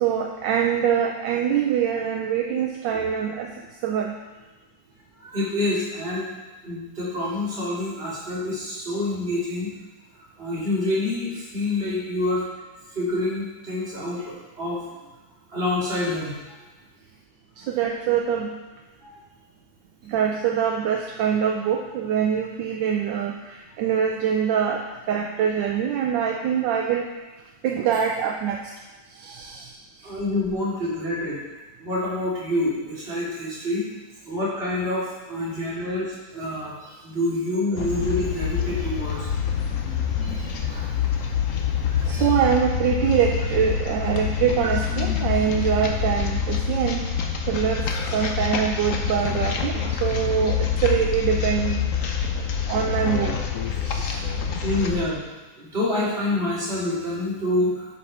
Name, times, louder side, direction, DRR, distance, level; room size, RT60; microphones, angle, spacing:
voice 1, 0.0-3.5 3.8-4.2 17.6-18.6 20.1-27.1 27.6-28.7 29.1-29.7 30.0-30.1 42.0-47.0 47.5-51.8 52.7-53.4 53.8-54.2, right 8 dB, 75° right, 2 dB, 1.3 m, -24 dB
voice 2, 5.2-6.3 6.6-9.7 10.4-12.4 12.9-14.9 15.5-16.4 19.0-19.1 30.0-31.4 31.8-33.9 34.3-39.3 40.2-40.8 41.9-42.3 54.6-55.2 55.6-57.9, left 1 dB, 30° right, -8 dB, 2.9 m, -27 dB
sound 1, 37.8-55.1, left 7 dB, 55° left, 0.9 m, -26 dB
8.3 x 5.7 x 5.4 m, 1.2 s
omnidirectional pair, 2.1 m